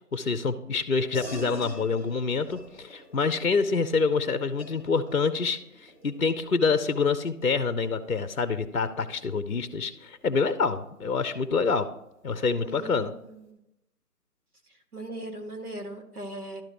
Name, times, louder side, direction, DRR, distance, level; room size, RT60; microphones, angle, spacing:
voice 1, 0.1-11.9 12.2-13.1, left 4 dB, 60° left, 13 dB, 0.6 m, -26 dB
sound 1, 1.1-11.0, right 1 dB, 15° left, 1.5 m, -48 dB
voice 2, 12.6-13.6 14.9-16.6, right 1 dB, 65° right, 3 dB, 1.7 m, -39 dB
12.0 x 4.9 x 2.9 m, 0.83 s
figure-of-eight pair, 170°, 47 cm